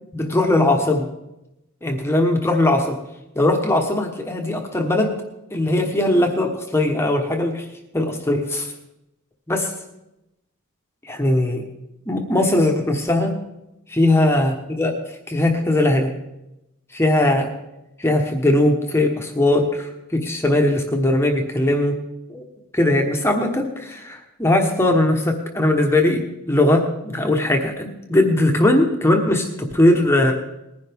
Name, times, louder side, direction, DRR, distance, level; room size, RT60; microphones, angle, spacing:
voice 1, 0.1-1.1 1.8-3.0 3.3-5.2 5.5-7.7 7.9-8.7 9.5-9.7 11.0-11.6 12.1-13.4 13.9-14.9 15.3-16.1 16.9-17.5 18.0-22.0 22.3-22.4 22.7-30.3, left 1 dB, 10° left, 2 dB, 1.1 m, -19 dB
19.5 x 10.5 x 3.5 m, 0.90 s
head